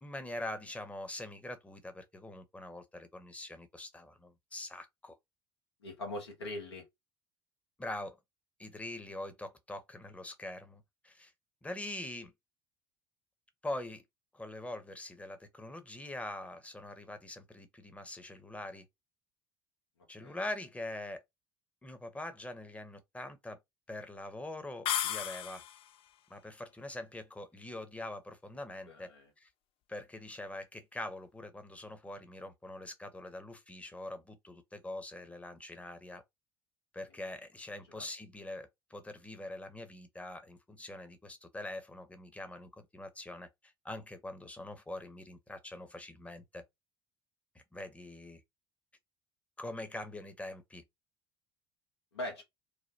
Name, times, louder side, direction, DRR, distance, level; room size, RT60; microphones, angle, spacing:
voice 1, 0.0-5.2 7.8-8.2 8.6-11.3 11.6-12.3 13.6-14.0 14.3-18.9 20.1-21.2 21.8-23.6 23.9-25.6 26.3-29.1 29.4-29.5 29.9-36.2 36.9-43.5 43.8-46.6 47.5-48.4 49.6-50.8, left 1 dB, 10° left, 0.8 m, -43 dB
voice 2, 5.8-6.8 20.2-20.4 28.9-29.3 37.9-38.0 52.1-52.4, left 1 dB, 85° left, 1.1 m, -41 dB
sound 1, 24.8-25.9, left 11 dB, 45° left, 0.4 m, -34 dB
3.3 x 2.2 x 2.7 m
figure-of-eight pair, 60°, 13 cm